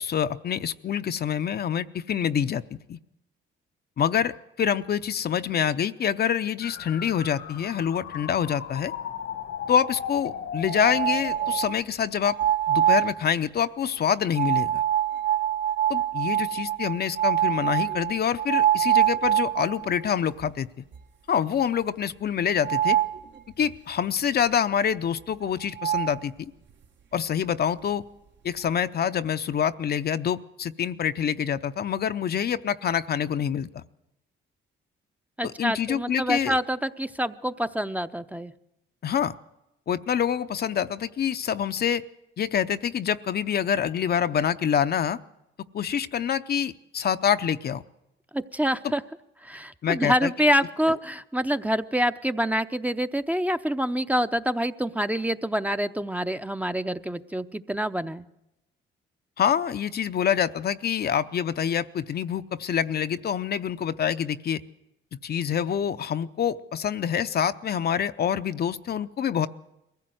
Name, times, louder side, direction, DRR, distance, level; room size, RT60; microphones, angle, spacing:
voice 1, 0.0-3.0 4.0-8.9 9.7-12.4 12.7-14.8 15.9-20.7 21.3-23.0 23.6-26.5 27.1-28.0 28.4-33.8 35.4-36.6 39.0-39.3 39.9-42.0 42.4-45.2 45.7-47.8 49.8-50.3 50.9-51.0 59.4-64.6 65.2-69.5, left 8 dB, 50° left, 11 dB, 0.6 m, -26 dB
sound 1, 6.6-11.6, left 8 dB, 80° left, 1.5 m, -36 dB
sound 2, 10.7-11.8 12.2-13.2 14.4-20.0 20.4-20.5 20.9-21.0 22.6-23.2 25.4-25.5 25.8-26.2, right 12 dB, 65° right, 1.4 m, -24 dB
voice 2, 35.4-38.5 48.3-49.0 49.4-58.3, equal, 5° right, 10 dB, 0.6 m, -26 dB
22.0 x 15.5 x 7.8 m, 0.90 s
cardioid pair, 85°, 20 cm